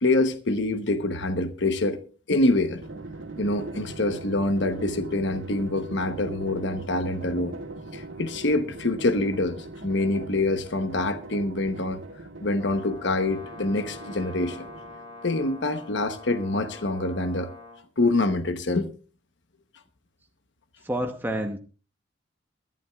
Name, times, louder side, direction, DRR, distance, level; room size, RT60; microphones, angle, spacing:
voice 1, 0.0-2.0 2.3-2.8 3.4-7.6 7.9-12.0 12.4-14.7 15.2-17.5 18.0-18.9, left 2 dB, 65° left, 1.0 m, -25 dB
Drum, 2.8-15.2, right 2 dB, 75° right, 2.5 m, -40 dB
Brass instrument, 12.6-17.8, left 2 dB, 25° left, 4.3 m, -44 dB
voice 2, 20.8-21.6, right 1 dB, 10° right, 0.9 m, -28 dB
22.5 x 11.0 x 2.4 m
head